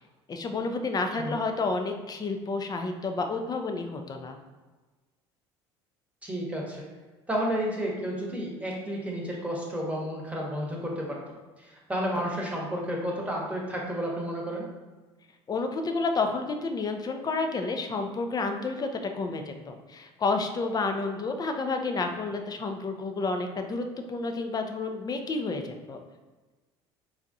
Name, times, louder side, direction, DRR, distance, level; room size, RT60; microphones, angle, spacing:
voice 1, 0.3-4.4 15.5-18.9 19.1-26.0, left 3 dB, 30° left, 5 dB, 0.5 m, -30 dB
voice 2, 6.2-6.8 7.3-14.7, equal, 10° right, -2 dB, 1.1 m, -31 dB
4.6 x 2.3 x 2.7 m, 1.2 s
hypercardioid pair, 65°, 14 cm